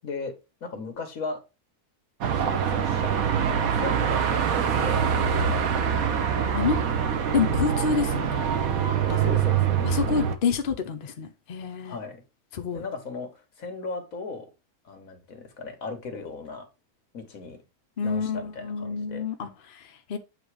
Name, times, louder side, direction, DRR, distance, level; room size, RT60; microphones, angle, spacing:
voice 1, 0.0-0.3 0.6-1.4 2.4-5.0 9.1-9.8 11.8-12.2 12.7-13.3 13.6-14.5 14.8-16.7 17.1-17.6 18.0-19.5, left 4 dB, 65° left, 1.7 m, -37 dB
Car passing by / Traffic noise roadway noise / Engine, 2.2-10.4, right 7 dB, 70° right, 1.3 m, -24 dB
voice 2, 7.3-8.4 9.8-12.0 12.5-12.9 18.0-20.2, left 5 dB, 45° left, 0.7 m, -28 dB
7.9 x 2.9 x 4.8 m
omnidirectional pair, 1.6 m